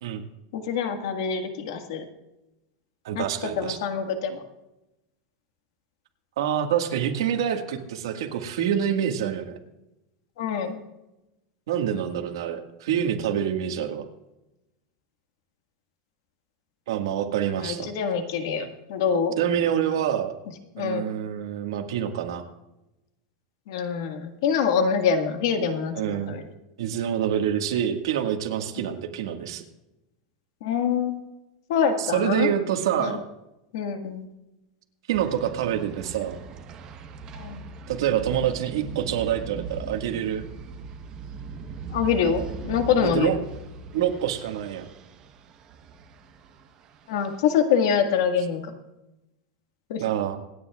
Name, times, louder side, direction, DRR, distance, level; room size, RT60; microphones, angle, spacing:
voice 1, 0.5-2.0 3.1-3.2 3.6-4.4 10.4-10.8 17.6-19.3 20.7-21.1 23.7-26.4 30.6-31.2 31.7-32.5 33.0-33.2 33.7-34.3 37.3-37.6 41.9-43.3 47.1-48.7 49.9-50.0, left 7 dB, 65° left, 6 dB, 1.7 m, -25 dB
voice 2, 3.0-3.8 6.4-9.6 11.7-14.0 16.9-17.9 19.4-20.3 20.8-22.4 25.9-26.4 26.8-29.6 32.0-33.2 35.1-36.4 37.9-40.4 43.0-43.4 43.9-44.9 50.0-50.4, right 9 dB, 80° right, 5 dB, 1.7 m, -26 dB
sound 1, 35.1-47.4, right 4 dB, 30° right, 1.0 m, -40 dB
26.5 x 9.6 x 2.4 m, 0.95 s
supercardioid pair, 170°, 2 cm